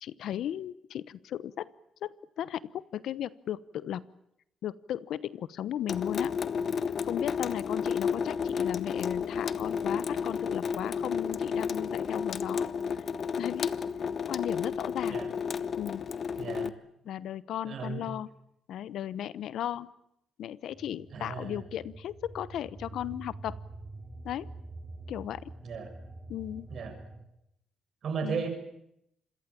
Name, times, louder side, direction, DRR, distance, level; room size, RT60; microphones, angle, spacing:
voice 1, 0.0-1.7 2.0-4.0 4.6-6.3 7.0-12.7 13.4-13.7 14.3-15.2 15.7-16.0 16.6-16.7 17.0-18.3 18.7-19.9 20.4-23.6 24.2-24.5 25.1-25.5 26.3-26.7 28.2-28.5, left 11 dB, 75° left, 18 dB, 1.0 m, -36 dB
Water tap faucet / Sink (filling or washing) / Drip, 5.9-16.7, left 6 dB, 50° left, 1.1 m, -32 dB
voice 2, 16.4-16.7 17.6-18.1 21.1-21.6 25.6-25.9 26.7-26.9 28.0-28.5, right 6 dB, 60° right, 7 dB, 7.2 m, -35 dB
sound 1, 20.7-27.2, right 2 dB, 15° right, 4.6 m, -46 dB
27.0 x 22.0 x 8.6 m, 0.77 s
cardioid pair, 90°, 0 cm